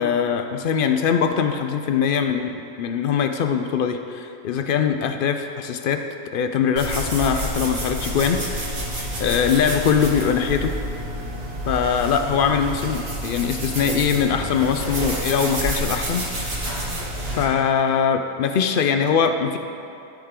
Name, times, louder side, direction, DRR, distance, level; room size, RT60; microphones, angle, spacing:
voice 1, 0.0-6.0 6.3-8.7 9.2-10.8 11.7-16.2 17.4-19.6, left 7 dB, 60° left, 6 dB, 0.6 m, -22 dB
sound 1, 6.8-17.4, right 1 dB, 50° right, 1.6 m, -29 dB
13.0 x 5.1 x 3.7 m, 2.7 s
omnidirectional pair, 1.3 m